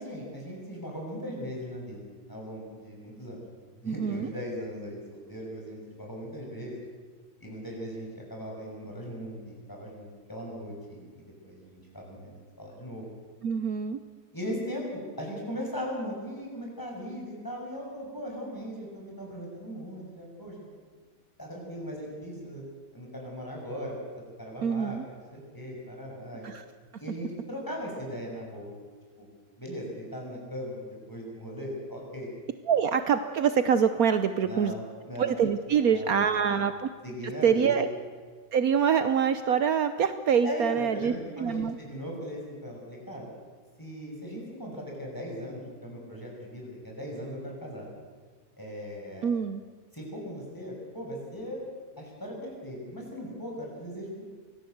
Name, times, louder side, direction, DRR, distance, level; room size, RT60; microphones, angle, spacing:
voice 1, 0.0-3.4 3.8-6.8 7.4-13.1 14.3-20.5 21.4-22.6 22.9-23.9 24.4-26.5 27.0-28.7 29.2-29.3 29.6-32.3 34.4-35.4 35.9-36.5 37.0-37.8 40.4-43.2 43.8-47.9 48.6-49.3 49.9-51.6 52.0-54.2, equal, 10° left, -1 dB, 6.6 m, -38 dB
voice 2, 3.8-4.3 13.4-14.0 24.6-25.0 26.4-26.6 32.7-34.7 35.2-36.9 37.4-37.9 38.5-41.8 49.2-49.6, right 7 dB, 65° right, 10 dB, 1.3 m, -25 dB
24.5 x 18.0 x 8.0 m, 1.5 s
omnidirectional pair, 1.7 m